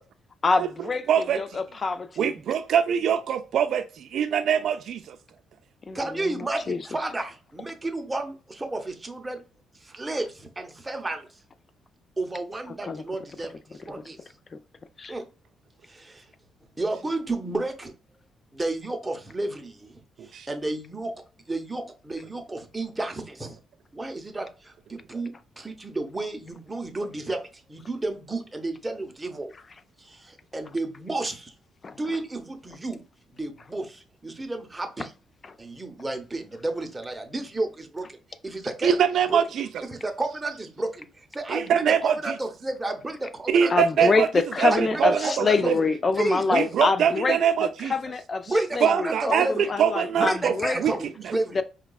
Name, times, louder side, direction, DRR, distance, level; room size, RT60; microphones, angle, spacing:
voice 1, 0.4-1.0 1.3-2.3 5.9-6.8 12.9-13.0 15.0-15.1 31.8-31.9 43.7-50.8 51.5-51.6, left 4 dB, 35° left, 0.3 m, -26 dB
voice 2, 1.1-1.6 2.2-5.2 20.2-20.5 38.8-39.7 41.5-42.3 43.5-44.3 44.6-45.8 46.5-47.9 48.8-50.5 50.8-50.9 51.2-51.3, right 8 dB, 70° right, 0.3 m, -23 dB
voice 3, 5.9-9.4 9.8-11.3 12.2-14.2 15.1-15.3 15.9-16.3 16.8-17.9 18.5-21.1 21.5-23.6 23.9-29.5 30.0-31.5 31.9-33.0 33.3-35.1 35.6-38.2 38.4-39.0 39.3-39.4 39.9-44.1 44.7-45.7 46.2-46.6 48.5-49.7 50.1-51.6, right 2 dB, 15° right, 0.7 m, -32 dB
4.7 x 2.3 x 2.2 m
cardioid pair, 90°, 0 cm